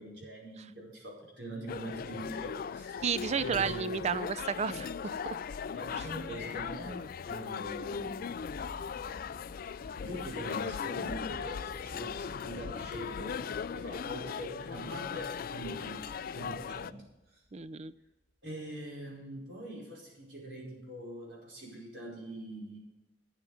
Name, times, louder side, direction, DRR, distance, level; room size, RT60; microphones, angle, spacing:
voice 1, 0.0-3.0 3.4-3.9 5.7-8.2 9.8-17.0 17.3-17.4 18.4-22.8, right 1 dB, 70° right, -3 dB, 4.9 m, -43 dB
sound 1, 1.7-16.9, left 6 dB, 50° left, 0.3 m, -38 dB
voice 2, 3.0-4.9 5.3-5.4 17.5-17.9, right 6 dB, 35° right, 16 dB, 0.4 m, -32 dB
sound 2, 5.2-18.0 18.3-18.4, equal, 35° left, 3.2 m, -54 dB
12.5 x 9.1 x 4.9 m, 1.0 s
head